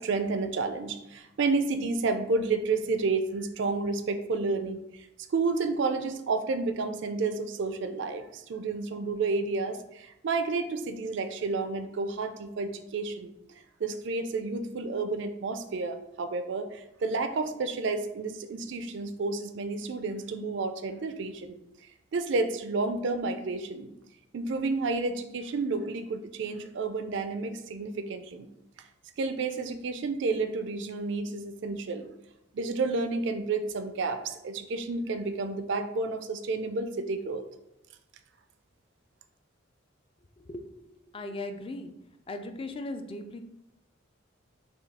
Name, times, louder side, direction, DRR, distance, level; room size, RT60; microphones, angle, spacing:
voice 1, 0.0-13.3 13.8-21.6 22.1-23.9 24.3-28.5 29.2-32.1 32.5-37.5, right 3 dB, 60° right, 8 dB, 0.4 m, -30 dB
voice 2, 40.4-40.9 41.1-41.9 42.3-43.4, left 2 dB, 25° left, 7 dB, 0.4 m, -38 dB
5.5 x 2.3 x 4.1 m, 0.85 s
head